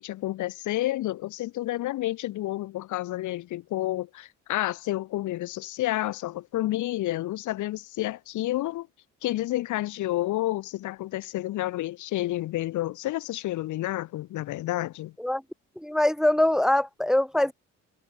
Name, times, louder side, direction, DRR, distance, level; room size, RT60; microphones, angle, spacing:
voice 1, 0.0-8.9 9.2-15.1, left 16 dB, 75° left, 0.8 m, -30 dB
voice 2, 15.8-17.5, left 1 dB, ahead, 0.6 m, -23 dB
cardioid pair, 90°, 30 cm